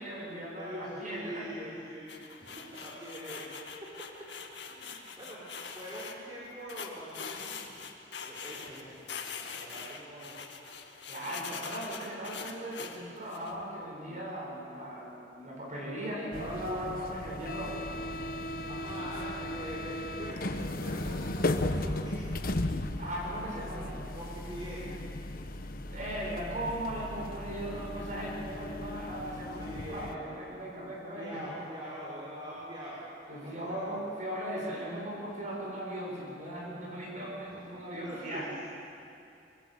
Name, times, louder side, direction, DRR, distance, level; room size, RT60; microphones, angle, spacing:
voice 1, 0.0-1.4 11.1-17.9 23.0-24.1 25.9-31.5 33.3-38.5, right 1 dB, 45° right, -3 dB, 7.6 m, -38 dB
voice 2, 0.5-3.7 4.7-5.5 5.7-7.8 8.2-10.4 18.7-22.4 24.1-24.9 29.5-30.3 31.1-33.0 33.3-33.9 37.5-38.6, equal, 25° right, -7 dB, 5.0 m, -44 dB
sound 1, 2.1-6.1 6.7-8.8 9.1-13.5, left 6 dB, 80° left, 2.1 m, -43 dB
sound 2, 16.3-30.2, left 1 dB, 55° left, 1.2 m, -36 dB
25.5 x 22.0 x 8.1 m, 2.6 s
head